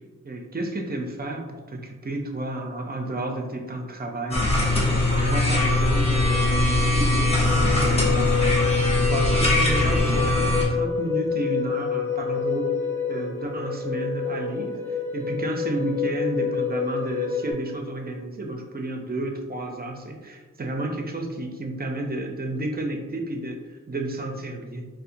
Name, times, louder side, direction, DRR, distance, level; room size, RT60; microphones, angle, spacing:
voice 1, 0.2-4.6 4.9-12.8 13.1-24.9, right 2 dB, 30° right, 3 dB, 0.5 m, -31 dB
sound 1, 4.3-10.7, left 2 dB, 20° left, 1.0 m, -21 dB
sound 2, 5.0-17.5, left 6 dB, 40° left, 0.9 m, -29 dB
4.1 x 2.1 x 2.6 m, 1.3 s
cardioid pair, 60°, 32 cm